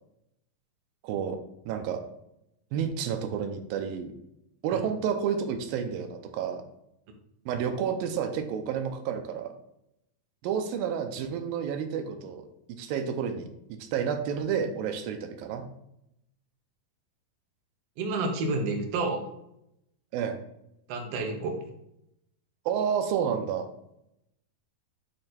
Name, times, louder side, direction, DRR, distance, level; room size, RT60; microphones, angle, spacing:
voice 1, 1.0-1.4 1.7-2.0 2.7-4.1 4.6-6.6 7.5-9.5 10.4-12.5 12.8-15.6 20.1-20.4 22.7-23.7, right 7 dB, 90° right, 6 dB, 2.5 m, -30 dB
voice 2, 18.0-19.2 20.9-21.6, right 3 dB, 70° right, 3 dB, 1.6 m, -29 dB
8.6 x 3.3 x 4.2 m, 0.81 s
omnidirectional pair, 4.1 m